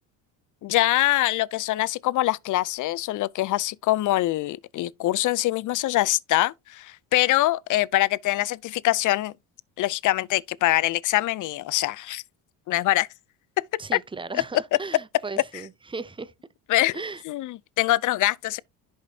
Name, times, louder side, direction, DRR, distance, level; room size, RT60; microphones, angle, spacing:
voice 1, 0.6-9.3 9.8-12.2 12.7-13.1 13.6-13.7 16.7-17.0 17.3-18.6, left 16 dB, 45° left, 0.5 m, -24 dB
voice 2, 13.8-16.3 16.9-17.2, right 4 dB, 10° right, 0.6 m, -36 dB
11.0 x 5.1 x 2.8 m
supercardioid pair, 95°, 43 cm